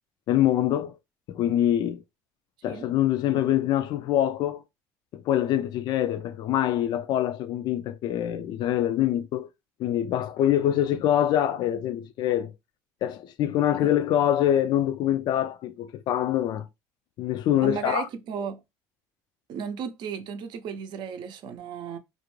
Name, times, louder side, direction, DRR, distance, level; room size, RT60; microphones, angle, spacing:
voice 1, 0.3-0.9 1.3-2.0 2.6-4.6 5.1-9.5 9.8-12.5 13.0-16.7 17.2-18.1, left 11 dB, 60° left, 0.3 m, -24 dB
voice 2, 17.6-18.6 19.5-22.0, right 7 dB, 60° right, 0.5 m, -34 dB
2.5 x 2.1 x 3.0 m
supercardioid pair, 85°, 9 cm